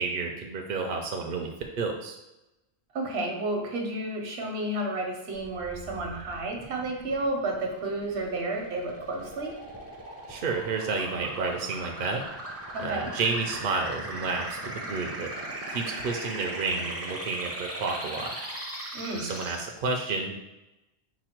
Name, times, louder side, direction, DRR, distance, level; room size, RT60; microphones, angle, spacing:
voice 1, 0.0-1.5 1.8-2.2 10.3-12.2 12.8-15.3 15.7-18.3 19.1-20.3, right 4 dB, 60° right, 2 dB, 0.7 m, -30 dB
voice 2, 2.9-9.6 12.7-13.1 18.9-19.3, right 2 dB, 75° right, 1 dB, 1.1 m, -31 dB
sound 1, 5.4-19.6, right 1 dB, 20° right, 0.5 m, -39 dB
5.0 x 2.3 x 4.4 m, 0.95 s
omnidirectional pair, 1.1 m